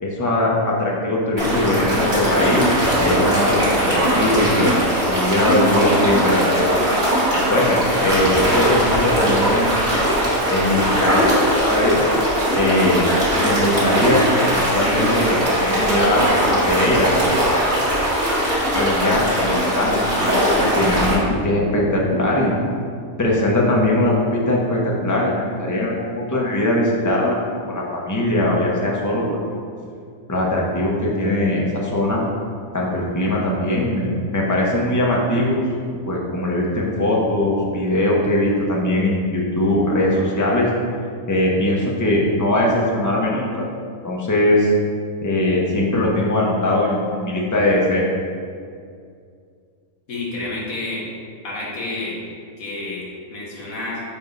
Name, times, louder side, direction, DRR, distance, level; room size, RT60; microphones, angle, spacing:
voice 1, 0.0-2.7 3.0-4.7 5.1-6.8 7.5-9.7 10.5-12.0 12.5-13.1 13.3-14.3 14.5-17.9 18.7-22.5 23.2-27.4 27.7-29.4 30.3-32.2 32.7-35.6 36.1-40.7 41.3-43.7 44.0-44.7 45.2-48.1, left 1 dB, 15° left, -3 dB, 0.6 m, -20 dB
sound 1, 1.4-21.1, equal, 35° right, 1.6 m, -20 dB
voice 2, 50.1-51.0 51.4-52.2 52.6-54.0, left 2 dB, 65° left, -5 dB, 1.7 m, -29 dB
4.5 x 4.3 x 5.2 m, 2.2 s
omnidirectional pair, 1.6 m